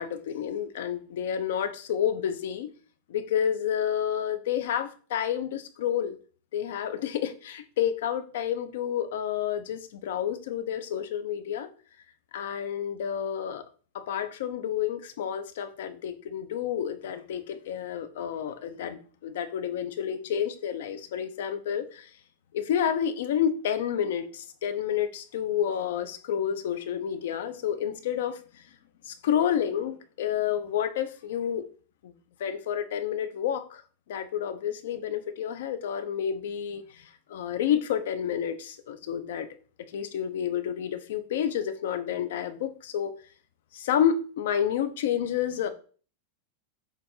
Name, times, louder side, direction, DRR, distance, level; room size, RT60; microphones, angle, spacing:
voice 1, 0.0-2.7 3.1-6.2 6.5-11.7 12.3-13.6 13.9-22.1 22.5-28.6 29.0-31.6 32.0-32.1 32.4-33.8 34.1-39.5 39.9-43.1 43.7-45.7, left 9 dB, 75° left, 0.7 m, -30 dB
7.3 x 2.5 x 5.5 m
supercardioid pair, 160°, 0 cm